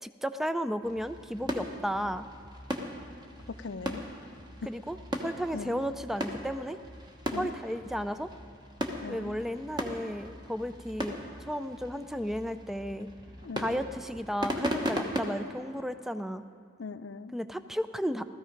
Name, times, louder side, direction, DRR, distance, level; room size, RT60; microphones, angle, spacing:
voice 1, 0.0-2.3 4.7-6.8 7.3-8.3 9.1-13.1 13.6-16.4 17.3-18.3, equal, ahead, 11 dB, 0.3 m, -34 dB
sound 1, 0.8-15.2, equal, 25° right, 1.1 m, -38 dB
voice 2, 3.5-4.0 4.6-4.7 5.5-5.8 7.3-7.5 9.0-9.4 13.4-13.8 16.8-17.3, left 4 dB, 70° left, 12 dB, 0.5 m, -40 dB
16.5 x 13.5 x 5.2 m, 2.3 s
head